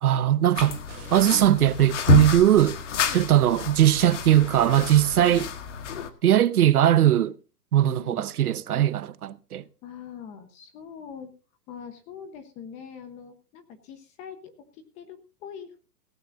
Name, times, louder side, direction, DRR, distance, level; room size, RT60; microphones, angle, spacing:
voice 1, 0.0-0.8 1.1-2.8 3.1-5.5 6.2-7.3 7.7-9.6, right 12 dB, 70° right, 0.9 m, -20 dB
sound 1, 0.5-6.1, left 6 dB, 50° left, 1.8 m, -29 dB
sound 2, 0.9-3.4 3.9-4.0, right 7 dB, 30° right, 6.9 m, -54 dB
voice 2, 7.8-8.3 9.8-11.3 11.7-15.7, left 7 dB, 15° left, 1.1 m, -43 dB
17.5 x 15.0 x 2.7 m
hypercardioid pair, 165°, 47 cm